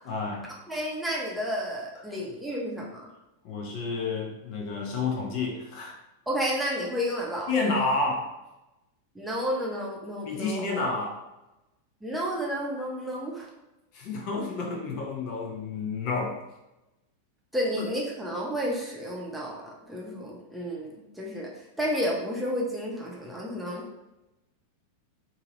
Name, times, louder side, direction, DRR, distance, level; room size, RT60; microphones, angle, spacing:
voice 1, 0.0-0.5 3.4-6.0 7.5-8.4 10.3-11.2 13.9-16.4, left 3 dB, 45° left, -1 dB, 0.8 m, -30 dB
voice 2, 0.7-3.1 6.3-7.5 9.1-10.7 12.0-13.5 17.5-19.6 19.9-21.5 21.8-23.8, equal, 5° right, -4 dB, 0.9 m, -31 dB
3.8 x 2.8 x 3.0 m, 0.95 s
figure-of-eight pair, 90°, 0 cm